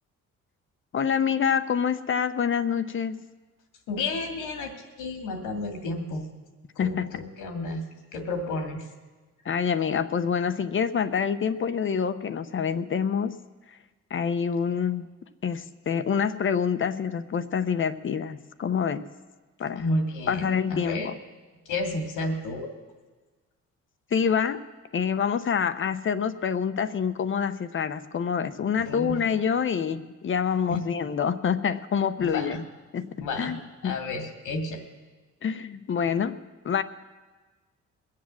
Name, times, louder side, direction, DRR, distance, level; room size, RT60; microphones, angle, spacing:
voice 1, 0.9-3.2 6.8-7.2 9.4-13.4 13.7-13.8 14.1-15.1 15.4-19.1 19.6-19.9 20.3-21.2 24.1-24.6 24.9-32.6 32.9-34.0 35.4-36.4 36.6-36.8, left 7 dB, 40° left, 12 dB, 0.7 m, -26 dB
voice 2, 3.9-6.3 6.8-7.8 8.1-8.9 19.8-21.1 21.7-22.7 28.8-29.1 30.7-30.8 32.2-32.6 33.2-33.5 33.8-34.8, left 2 dB, 90° left, 5 dB, 2.2 m, -31 dB
21.0 x 7.5 x 7.4 m, 1.3 s
cardioid pair, 90°, 30 cm